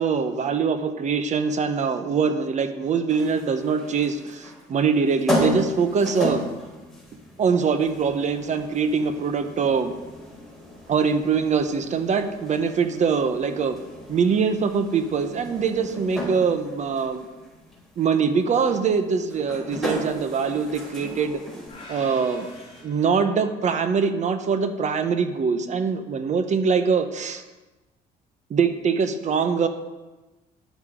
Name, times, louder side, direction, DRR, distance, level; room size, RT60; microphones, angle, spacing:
voice 1, 0.0-6.4 7.4-9.9 10.9-13.8 14.1-17.2 18.0-21.4 21.9-22.5 22.8-27.4 28.5-29.7, right 5 dB, 45° right, 9 dB, 1.0 m, -23 dB
sound 1, 3.1-22.8, left 1 dB, ahead, 4.4 m, -34 dB
sound 2, 21.7-23.9, left 2 dB, 35° left, 3.4 m, -46 dB
10.5 x 8.6 x 5.2 m, 1.1 s
cardioid pair, 110°, 17 cm